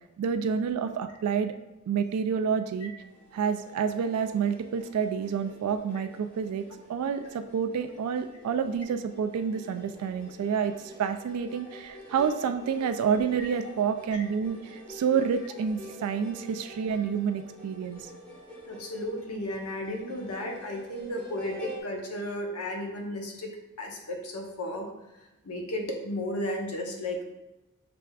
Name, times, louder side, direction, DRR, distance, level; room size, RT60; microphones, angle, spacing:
voice 1, 0.2-1.5 1.9-2.9 3.3-18.1, right 7 dB, 75° right, 13 dB, 0.3 m, -29 dB
sound 1, 3.0-21.8, equal, 5° left, 1.1 m, -47 dB
voice 2, 18.7-23.5 23.8-24.9 25.4-27.2, left 1 dB, 75° left, 2 dB, 0.8 m, -34 dB
6.0 x 3.3 x 2.3 m, 1.0 s
head